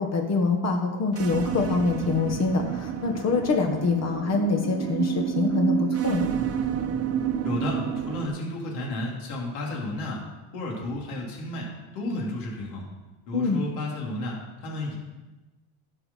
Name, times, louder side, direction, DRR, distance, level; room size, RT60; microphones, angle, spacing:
voice 1, 0.0-6.2 13.3-13.6, left 4 dB, 40° left, 3 dB, 1.6 m, -25 dB
sound 1, 1.1-8.3, right 9 dB, 35° right, 1.0 m, -29 dB
voice 2, 7.4-10.2 10.5-11.7 11.9-12.8 13.3-15.0, left 2 dB, 65° left, -2 dB, 3.8 m, -32 dB
11.5 x 5.6 x 5.8 m, 1.1 s
supercardioid pair, 115°, 42 cm